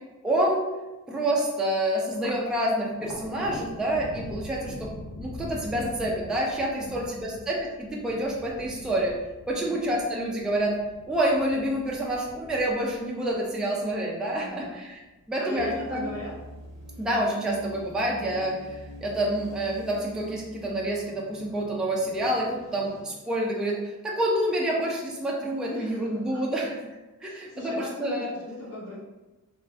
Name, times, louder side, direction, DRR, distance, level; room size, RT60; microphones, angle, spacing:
voice 1, 0.2-0.6 1.1-4.9 5.2-9.1 9.5-10.7 11.1-15.0 15.3-16.1 17.0-26.8 27.2-28.3, right 1 dB, ahead, -3 dB, 0.3 m, -28 dB
Thunder, 2.1-14.7 15.1-15.9 16.3-17.1, left 1 dB, 80° left, 0.6 m, -43 dB
voice 2, 6.8-7.4 9.5-9.7 14.4-14.8 15.4-16.3 17.9-18.6 25.7-26.6 27.2-29.0, equal, 45° left, -11 dB, 1.4 m, -39 dB
sound 1, 15.6-23.0, equal, 55° right, 0.8 m, -46 dB
3.1 x 2.0 x 2.6 m, 1.1 s
wide cardioid pair, 160°, 33 cm